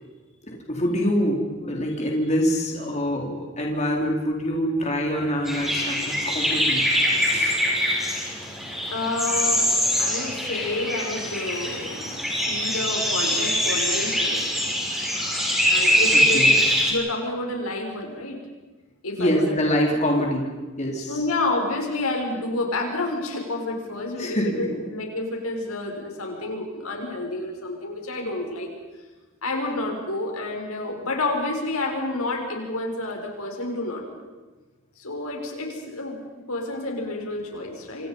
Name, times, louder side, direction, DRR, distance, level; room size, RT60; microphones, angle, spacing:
voice 1, 0.4-7.6 16.1-16.6 19.2-20.5 20.8-21.2 24.2-24.8, equal, 35° left, 0 dB, 4.1 m, -25 dB
sound 1, 5.5-16.9, equal, ahead, 6.4 m, -23 dB
voice 2, 8.9-9.7 10.0-14.5 15.7-16.5 16.9-18.4 19.0-19.6 19.9-20.0 21.1-28.7 29.4-34.3 35.0-36.2 36.5-38.1, left 2 dB, 90° left, 1 dB, 6.3 m, -29 dB
28.0 x 27.0 x 5.6 m, 1.2 s
head